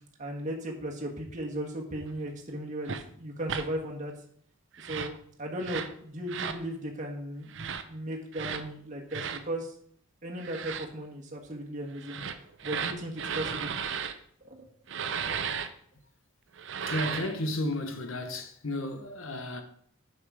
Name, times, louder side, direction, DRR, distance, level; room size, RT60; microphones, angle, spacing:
voice 1, 0.2-4.1 4.8-5.1 5.4-9.7 10.2-12.2 12.6-13.7 14.4-14.7, right 1 dB, 35° right, 1.5 m, -36 dB
sound 1, 2.9-3.0 3.5-3.7 4.7-5.2 5.6-5.9 6.3-6.6 7.5-7.8 8.3-8.6 9.1-9.4 10.4-10.9 12.0-14.1 14.9-15.7 16.6-17.4, right 7 dB, 60° right, 0.6 m, -34 dB
voice 2, 16.8-19.6, left 1 dB, 70° left, 1.1 m, -33 dB
6.5 x 5.8 x 4.9 m
head